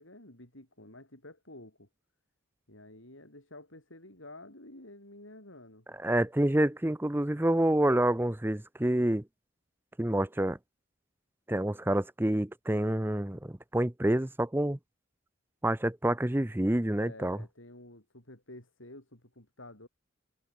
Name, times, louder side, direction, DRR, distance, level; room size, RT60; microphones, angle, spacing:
voice 1, 0.0-1.9 2.7-5.9 16.9-19.9, left 1 dB, 75° left, 7.5 m, -50 dB
voice 2, 6.0-9.2 10.0-10.6 11.5-14.8 15.6-17.4, right 1 dB, 10° right, 0.6 m, -28 dB
head